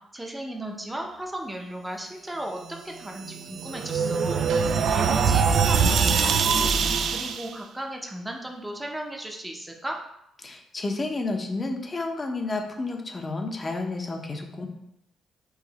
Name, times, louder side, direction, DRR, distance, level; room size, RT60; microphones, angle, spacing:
voice 1, 0.1-4.4 4.9-6.7 7.1-10.0, right 1 dB, 10° right, 1 dB, 0.7 m, -36 dB
sound 1, 3.0-7.5, right 6 dB, 65° right, 0.4 m, -23 dB
voice 2, 10.4-14.7, left 3 dB, 30° left, 4 dB, 0.8 m, -31 dB
4.8 x 2.6 x 4.0 m, 0.79 s
cardioid pair, 90°, 0 cm